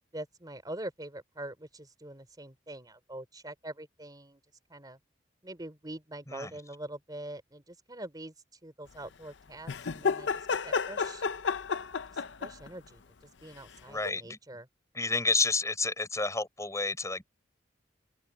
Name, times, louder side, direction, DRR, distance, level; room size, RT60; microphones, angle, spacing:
voice 1, 0.1-4.4 4.7-5.0 5.4-8.3 8.6-10.3 10.6-11.2 12.1-13.0 13.4-14.7, right 1 dB, 20° right, 3.5 m, -44 dB
sound 1, 9.7-12.7 14.0-14.1, left 5 dB, 70° left, 0.6 m, -31 dB
voice 2, 13.9-14.4 14.9-17.2, left 3 dB, 15° left, 6.9 m, -30 dB
head